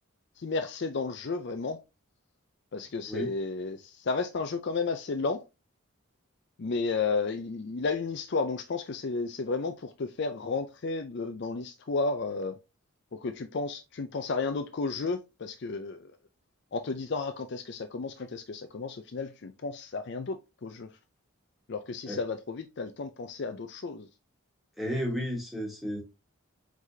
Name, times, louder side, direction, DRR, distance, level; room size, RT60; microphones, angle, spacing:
voice 1, 0.4-1.8 2.7-5.4 6.6-12.6 13.1-16.1 16.7-20.9 21.7-24.1, left 4 dB, 50° left, 0.4 m, -32 dB
voice 2, 24.8-26.0, equal, ahead, 1.4 m, -32 dB
4.7 x 3.9 x 2.7 m
head